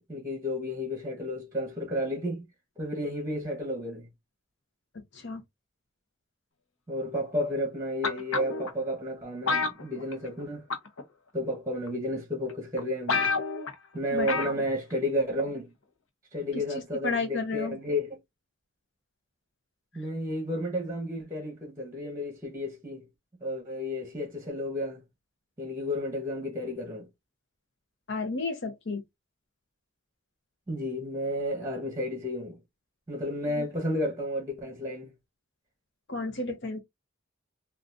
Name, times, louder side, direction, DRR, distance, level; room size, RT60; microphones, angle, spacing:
voice 1, 0.0-2.5 2.8-4.1 6.9-10.6 11.3-13.3 13.9-15.7 16.3-18.2 19.9-23.1 23.4-25.0 25.6-27.1 30.7-32.6 33.1-35.1, left 1 dB, 15° right, 1.0 m, -32 dB
sound 1, 8.0-8.7 9.5-10.4 10.7-11.0 11.9-12.0 12.5-12.6 12.8-12.9 13.1-13.7 14.3-14.6 14.9-15.0, left 4 dB, 90° left, 0.8 m, -28 dB
voice 2, 14.1-14.5 16.5-16.6 17.0-17.7 28.1-29.0 33.5-33.7 36.1-36.8, left 3 dB, 60° left, 0.8 m, -32 dB
3.7 x 2.4 x 2.4 m
head